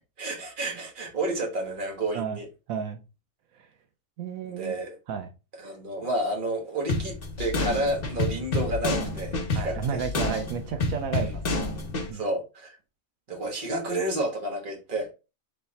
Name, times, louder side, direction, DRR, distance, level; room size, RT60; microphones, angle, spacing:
voice 1, 0.2-2.5 4.4-5.0 5.6-10.0 11.2-11.3 12.1-12.8 13.3-15.1, right 1 dB, 40° right, 1.3 m, -30 dB
voice 2, 2.7-3.0 3.5-3.7 4.2-4.8 5.1-5.3 9.5-11.6 12.1-12.2, right 7 dB, 85° right, 1.1 m, -32 dB
sound 1, 6.9-12.1, left 2 dB, 45° left, 1.1 m, -29 dB
3.3 x 3.3 x 4.0 m
omnidirectional pair, 1.4 m